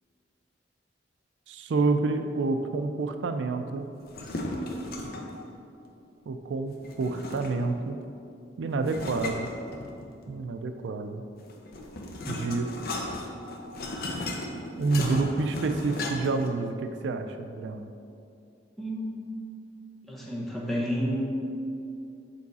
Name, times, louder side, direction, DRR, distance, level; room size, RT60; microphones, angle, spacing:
voice 1, 1.5-3.9 6.3-8.0 8.6-9.5 10.3-11.2 12.3-12.7 14.8-17.9, right 3 dB, 80° right, 7 dB, 0.4 m, -28 dB
sound 1, 4.0-5.4 6.8-7.8 8.8-10.2 11.4-16.5, left 1 dB, 55° left, 0.7 m, -35 dB
voice 2, 18.8-19.2 20.1-21.2, equal, ahead, -5 dB, 1.1 m, -30 dB
7.1 x 4.7 x 4.1 m, 2.6 s
head